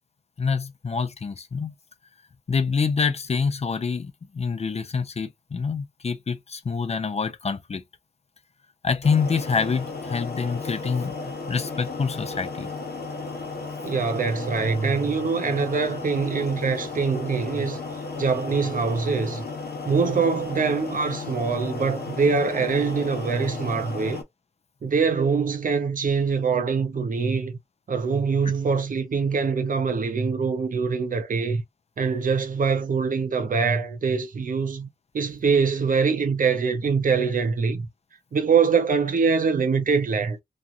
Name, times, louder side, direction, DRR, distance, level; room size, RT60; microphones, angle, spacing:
voice 1, 0.4-1.7 2.5-7.8 8.8-12.7, left 5 dB, 40° left, 0.5 m, -26 dB
sound 1, 9.0-24.2, left 3 dB, 85° left, 0.9 m, -34 dB
voice 2, 13.8-17.8 18.2-19.5 19.8-24.2 24.8-27.6 27.9-31.6 32.0-34.9 35.1-37.9 38.3-40.4, right 5 dB, 60° right, 0.7 m, -24 dB
3.0 x 2.3 x 2.5 m
wide cardioid pair, 85°, 16 cm